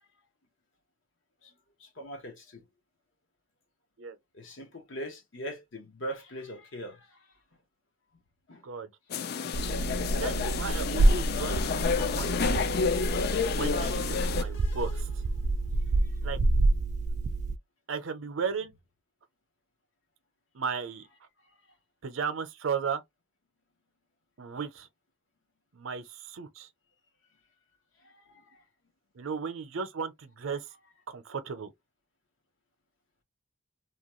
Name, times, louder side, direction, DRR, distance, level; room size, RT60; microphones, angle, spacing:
voice 1, 1.8-2.6 4.3-7.3 8.5-8.6 9.1-9.7 28.0-28.6, equal, 65° left, 1.0 m, -42 dB
sound 1, 9.1-14.4, left 6 dB, 50° left, 0.4 m, -30 dB
sound 2, 9.5-17.6, right 2 dB, 35° right, 0.3 m, -28 dB
voice 2, 10.2-12.9 13.6-15.1 16.2-16.4 17.9-18.7 20.5-21.0 22.0-23.0 24.4-24.9 25.7-26.7 29.2-30.6 31.1-31.7, right 6 dB, 80° right, 0.6 m, -35 dB
sound 3, 12.2-15.8, left 2 dB, 85° left, 1.4 m, -48 dB
2.9 x 2.2 x 2.9 m
head